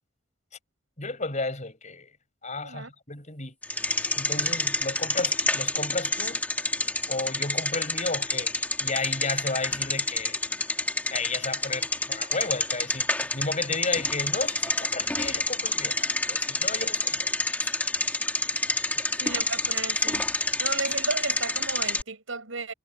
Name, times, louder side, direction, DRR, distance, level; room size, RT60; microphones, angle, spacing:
voice 1, 1.0-2.1 2.4-3.5 4.1-6.5 7.1-8.5 8.8-10.4 11.1-13.1 13.3-16.0 16.3-17.3 17.6-17.7 18.9-19.0, left 3 dB, 35° left, 6.5 m, -33 dB
Bicycle, 3.6-22.0, left 2 dB, 10° left, 1.4 m, -28 dB
voice 2, 19.2-20.3 20.6-22.7, right 3 dB, 90° right, 6.9 m, -33 dB
head